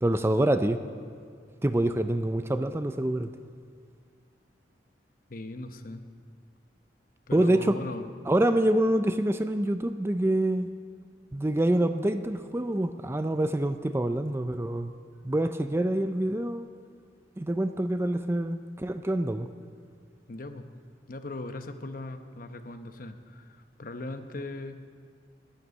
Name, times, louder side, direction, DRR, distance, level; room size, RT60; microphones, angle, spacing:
voice 1, 0.0-0.8 1.6-3.3 7.3-7.8 8.3-10.7 11.3-14.9 15.2-16.6 17.4-19.5, right 1 dB, 15° right, 9 dB, 0.4 m, -26 dB
voice 2, 0.8-1.1 5.3-6.0 7.3-8.1 20.3-20.7 21.1-24.8, left 2 dB, 50° left, 8 dB, 0.9 m, -39 dB
11.5 x 11.0 x 9.5 m, 2.1 s
head